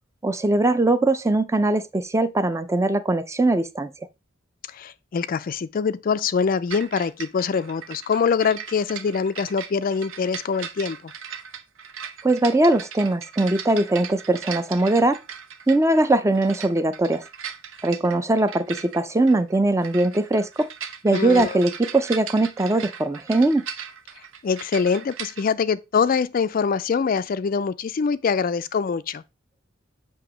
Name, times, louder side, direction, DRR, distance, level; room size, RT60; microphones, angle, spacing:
voice 1, 0.2-3.9 12.2-15.2 15.7-17.2 17.8-20.7 21.0-23.6, right 2 dB, 15° right, 0.5 m, -21 dB
voice 2, 4.7-11.1 21.1-21.6 24.4-29.2, left 5 dB, 45° left, 0.3 m, -24 dB
Wooden Chain, 6.7-25.5, right 8 dB, 85° right, 0.8 m, -38 dB
7.8 x 2.9 x 6.1 m
head